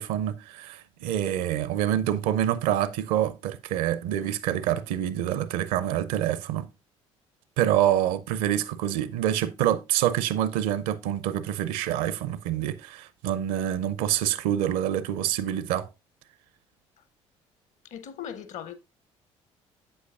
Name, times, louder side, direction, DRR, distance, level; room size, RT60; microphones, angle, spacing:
voice 1, 0.0-6.7 7.6-15.9, right 11 dB, 60° right, 0.6 m, -26 dB
voice 2, 17.8-18.7, left 9 dB, 50° left, 0.8 m, -38 dB
7.9 x 7.9 x 2.4 m
figure-of-eight pair, 50°, 16 cm